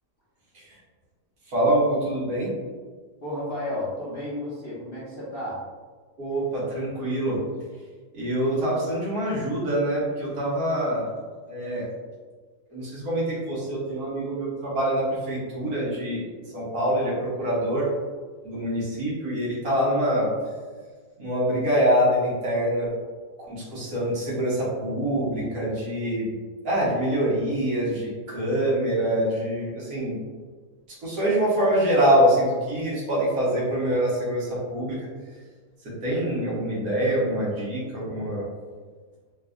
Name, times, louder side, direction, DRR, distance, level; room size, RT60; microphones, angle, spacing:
voice 1, 1.5-2.5 6.2-7.4 8.1-11.0 11.5-11.9 12.7-17.9 18.4-20.3 21.2-22.9 23.5-26.3 26.6-30.2 31.0-35.0 36.0-38.4, right 1 dB, 65° right, -7 dB, 1.6 m, -25 dB
voice 2, 3.2-5.6, left 1 dB, 45° left, -9 dB, 0.9 m, -32 dB
4.0 x 2.5 x 2.3 m, 1.5 s
omnidirectional pair, 1.7 m